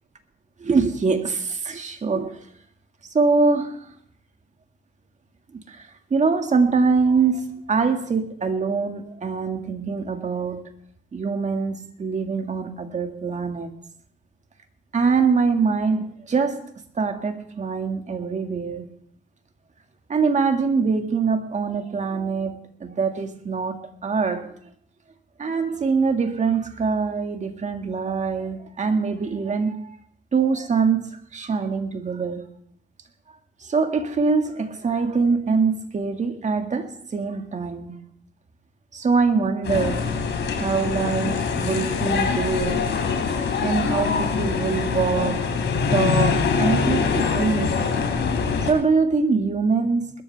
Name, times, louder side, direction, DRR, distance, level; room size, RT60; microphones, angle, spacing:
voice 1, 0.6-2.4 3.1-3.9 5.7-10.6 11.1-13.7 14.9-16.6 17.0-18.9 20.1-24.5 25.4-30.0 30.3-32.5 33.6-38.0 38.9-40.3 40.6-42.9 43.6-45.5 45.9-47.9 48.6-50.2, right 4 dB, 35° right, 6 dB, 1.9 m, -23 dB
sound 1, 39.6-48.7, left 5 dB, 65° left, 3.1 m, -23 dB
21.0 x 13.5 x 3.4 m, 0.62 s
cardioid pair, 90°, 20 cm